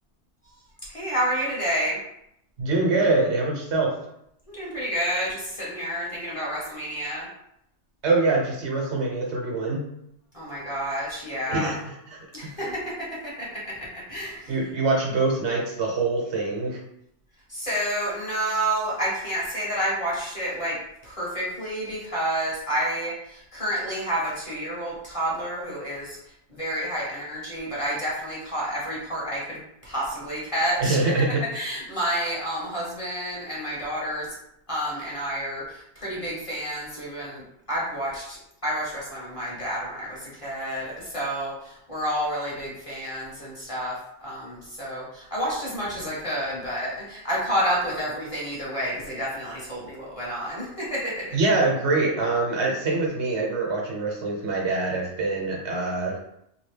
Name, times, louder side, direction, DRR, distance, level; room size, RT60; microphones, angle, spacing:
voice 1, 0.9-2.0 4.5-7.3 10.3-11.7 12.3-12.8 13.2-14.5 17.5-20.8 21.0-26.2 26.5-31.1 31.4-34.3 34.7-37.4 37.7-38.4 38.6-43.9 44.2-51.4, equal, 30° left, -6 dB, 1.1 m, -29 dB
voice 2, 2.6-4.0 8.0-9.9 11.5-12.7 14.5-16.8 30.8-31.4 51.3-56.2, right 3 dB, 70° right, -2 dB, 1.1 m, -24 dB
2.8 x 2.6 x 3.2 m, 0.76 s
omnidirectional pair, 1.2 m